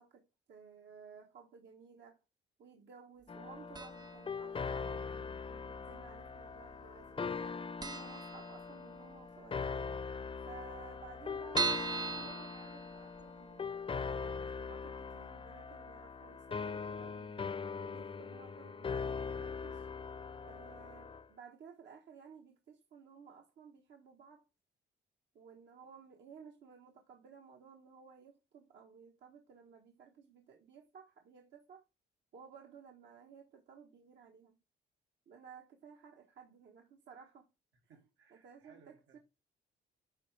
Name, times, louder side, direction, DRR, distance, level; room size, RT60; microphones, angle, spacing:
voice 1, 0.0-2.2 2.6-7.5 7.9-9.9 10.4-13.8 14.2-17.5 17.8-19.9 20.4-24.5 25.3-31.8 32.3-34.6 35.3-37.5 38.3-39.2, right 6 dB, 65° right, 1.2 m, -56 dB
sound 1, 3.3-21.2, left 5 dB, 25° left, 0.6 m, -41 dB
sound 2, 3.7-4.3 4.5-4.6 5.6-6.3 6.6-6.7 7.0-7.1 7.4-7.5 7.8-9.1 9.5-9.6 9.9-10.0 10.2-10.3 10.8-13.4 13.8-13.9 14.3-14.4, right 4 dB, 20° right, 0.4 m, -39 dB
voice 2, 37.9-39.2, right 5 dB, 85° right, 2.2 m, -63 dB
10.5 x 3.8 x 3.2 m
cardioid pair, 90°, 20 cm